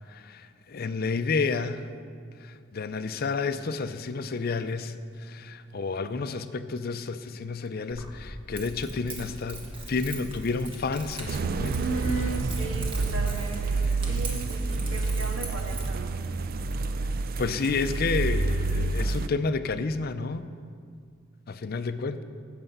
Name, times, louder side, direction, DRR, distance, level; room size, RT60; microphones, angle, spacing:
voice 1, 0.1-1.9 2.4-4.9 5.2-12.1 13.8-14.1 17.4-20.5 21.5-22.2, left 4 dB, 50° left, 11 dB, 0.5 m, -30 dB
Keys jangling, 7.9-15.9, right 1 dB, 25° right, 1.7 m, -40 dB
sound 1, 11.3-19.3, right 3 dB, 50° right, 0.4 m, -28 dB
voice 2, 11.7-16.2, right 2 dB, 85° right, 2 dB, 1.6 m, -36 dB
15.5 x 6.8 x 5.4 m, 2.2 s
head